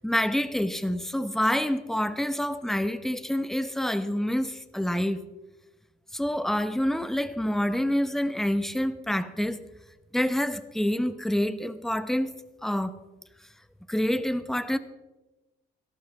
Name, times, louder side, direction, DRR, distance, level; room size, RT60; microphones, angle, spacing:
voice 1, 0.0-5.2 6.1-9.6 10.1-12.3 12.6-12.9 13.9-14.8, equal, ahead, 0.9 m, -27 dB
17.5 x 14.0 x 3.5 m
cardioid pair, 90°, 20 cm